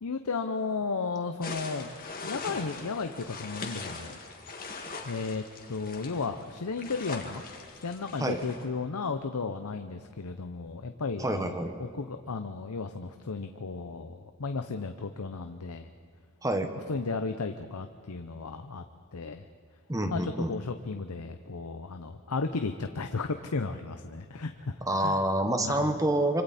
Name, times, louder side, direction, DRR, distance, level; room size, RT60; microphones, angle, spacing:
voice 1, 0.0-4.2 5.0-7.4 7.8-15.9 16.9-18.8 19.1-19.4 20.1-25.2 25.6-25.9, left 4 dB, 80° left, 7 dB, 0.7 m, -34 dB
sound 1, 1.4-8.7, left 3 dB, 40° left, 2.0 m, -41 dB
voice 2, 11.2-11.7 16.4-16.7 19.9-20.5 24.9-26.4, right 1 dB, 15° right, 6 dB, 1.2 m, -27 dB
26.0 x 25.0 x 4.3 m, 2.1 s
head